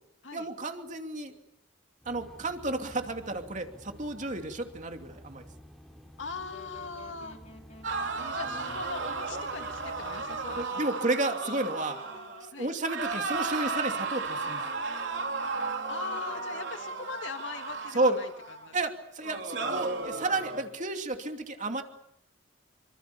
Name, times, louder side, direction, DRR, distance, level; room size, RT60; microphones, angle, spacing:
voice 1, 0.3-1.3 2.1-5.5 10.6-12.0 12.6-14.6 17.9-18.2 18.7-21.8, right 2 dB, 40° right, 5 dB, 2.7 m, -31 dB
sound 1, 2.0-10.6, equal, ahead, 2.9 m, -51 dB
voice 2, 6.2-7.4 8.1-11.1 12.5-12.7 15.9-18.3 18.6-18.8, left 4 dB, 70° left, 6 dB, 2.8 m, -40 dB
Wind instrument woodwind instrument, 6.5-17.4, left 1 dB, 35° left, 2.8 m, -52 dB
sound 2, 7.8-12.5 12.8-18.7 19.2-20.6, right 4 dB, 60° right, 4.0 m, -34 dB
27.5 x 25.0 x 7.0 m, 0.75 s
head